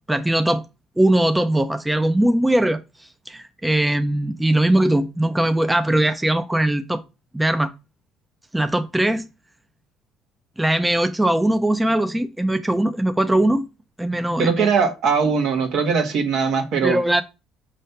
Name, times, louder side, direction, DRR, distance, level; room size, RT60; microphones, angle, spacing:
voice 1, 0.1-0.6 1.0-2.8 3.3-7.0 7.3-7.7 8.5-9.3 10.6-13.6 14.0-14.7 16.8-17.2, right 1 dB, 10° right, 0.5 m, -20 dB
voice 2, 14.4-17.0, right 5 dB, 65° right, 1.3 m, -20 dB
5.5 x 3.2 x 5.6 m
cardioid pair, 100°, 0 cm